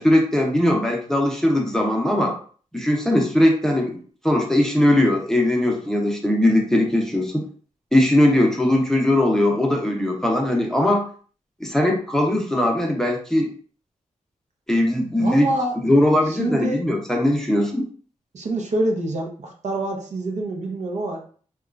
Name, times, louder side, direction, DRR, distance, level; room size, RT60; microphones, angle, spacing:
voice 1, 0.0-2.3 2.7-4.0 4.2-7.4 7.9-11.0 11.6-13.5 14.7-15.5 15.8-17.8, left 1 dB, 5° left, 0 dB, 0.6 m, -20 dB
voice 2, 15.2-15.7 16.3-16.8 18.3-21.2, right 2 dB, 60° right, 2 dB, 0.6 m, -26 dB
2.9 x 2.3 x 2.4 m, 0.43 s
wide cardioid pair, 90°, 13 cm